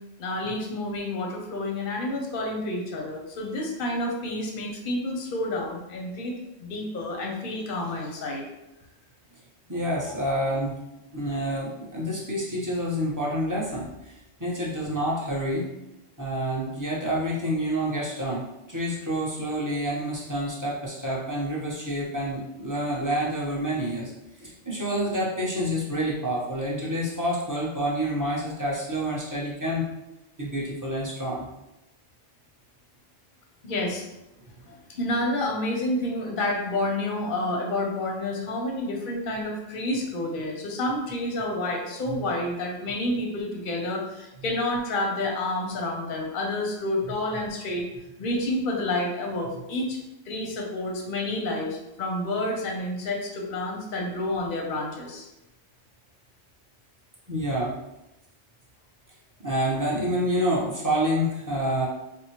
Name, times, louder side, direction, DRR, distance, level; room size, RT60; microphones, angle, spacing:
voice 1, 0.2-6.4 6.6-8.5 33.6-34.0 34.6-47.9 48.2-50.0 50.3-55.3, left 1 dB, 55° left, 1 dB, 0.7 m, -29 dB
voice 2, 9.7-10.8 11.1-15.7 16.2-18.4 18.7-24.1 24.4-29.9 30.4-31.5 42.1-42.2 57.3-57.8 59.4-61.9, equal, 20° right, -6 dB, 0.5 m, -28 dB
4.4 x 2.0 x 2.9 m, 0.94 s
omnidirectional pair, 1.3 m